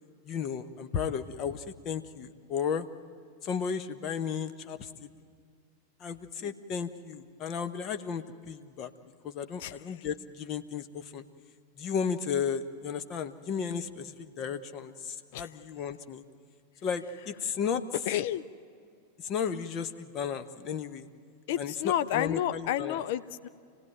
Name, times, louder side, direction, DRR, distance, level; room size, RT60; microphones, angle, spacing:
voice 1, 0.2-2.9 3.4-4.9 6.0-8.9 9.2-11.2 11.8-16.2 16.8-17.8 19.2-21.1 21.6-23.0, left 7 dB, 35° left, 9 dB, 1.0 m, -34 dB
voice 2, 18.1-18.4 21.5-23.5, left 12 dB, 50° left, 13 dB, 0.5 m, -30 dB
27.5 x 17.0 x 9.2 m, 2.2 s
figure-of-eight pair, 90°, 0 cm